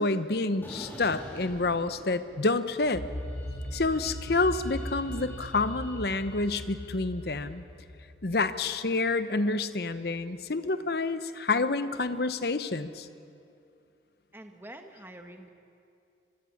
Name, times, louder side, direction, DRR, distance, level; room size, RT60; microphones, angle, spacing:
voice 1, 0.0-3.0 3.7-7.6 8.2-13.1, left 3 dB, 55° left, 12 dB, 0.9 m, -28 dB
sound 1, 0.6-2.6 2.9-7.2, left 1 dB, 10° left, 4.2 m, -48 dB
sound 2, 2.9-8.7, equal, 80° left, 4.7 m, -39 dB
voice 2, 14.3-15.5, right 1 dB, 10° right, 5 dB, 1.4 m, -46 dB
25.0 x 22.0 x 7.3 m, 2.6 s
head